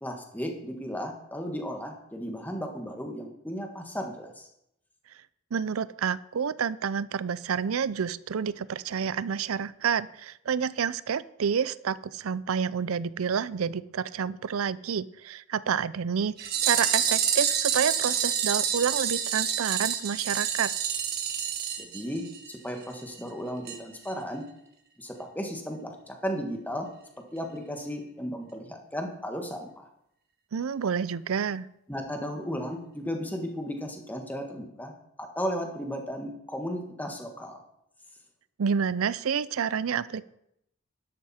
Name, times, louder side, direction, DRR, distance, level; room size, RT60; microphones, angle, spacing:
voice 1, 0.0-4.5 21.8-24.4 25.0-26.9 27.3-29.8 31.9-34.9 35.2-37.6, equal, 10° left, 3 dB, 1.6 m, -35 dB
voice 2, 5.5-20.7 30.5-31.7 38.6-40.2, right 7 dB, 75° right, 19 dB, 0.5 m, -29 dB
sound 1, 16.4-22.6 22.8-22.9 23.2-23.3 23.7-23.8 24.1-24.2, right 8 dB, 45° right, 1.5 m, -28 dB
12.0 x 11.0 x 4.3 m, 0.79 s
head